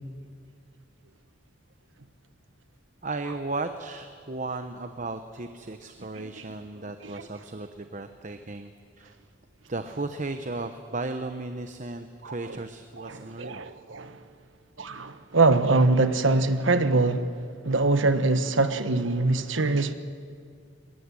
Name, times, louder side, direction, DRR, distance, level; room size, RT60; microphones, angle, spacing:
voice 1, 3.0-8.7 9.0-9.1 9.7-13.6, right 2 dB, 40° right, 0.9 m, -35 dB
voice 2, 12.2-12.6 13.0-14.2 14.8-17.3 17.6-19.9, right 3 dB, 80° right, 1.3 m, -24 dB
22.0 x 20.0 x 9.8 m
head